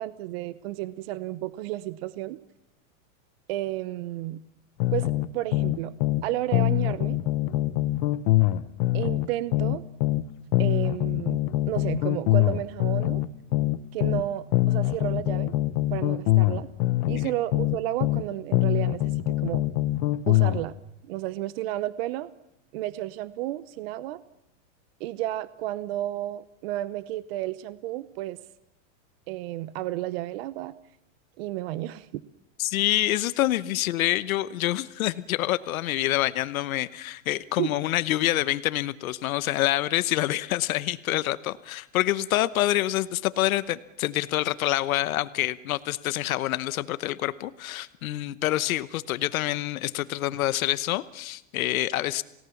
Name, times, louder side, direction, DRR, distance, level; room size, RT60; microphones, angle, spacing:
voice 1, 0.0-2.4 3.5-4.4 4.9-5.9 6.2-7.2 8.9-9.8 10.6-13.2 13.9-15.5 15.9-16.7 17.1-19.6 20.3-20.7 21.0-22.3 22.7-24.2 25.0-28.4 29.3-30.7 31.4-32.2 37.6-37.7, right 15 dB, 45° right, 17 dB, 0.8 m, -32 dB
sound 1, 4.8-6.3 6.5-10.2 10.5-14.2 14.5-18.2 18.5-20.6, left 17 dB, 35° left, 0.8 m, -24 dB
voice 2, 32.6-52.2, left 15 dB, 85° left, 16 dB, 1.0 m, -27 dB
28.5 x 18.0 x 7.1 m, 0.85 s
supercardioid pair, 165°, 41 cm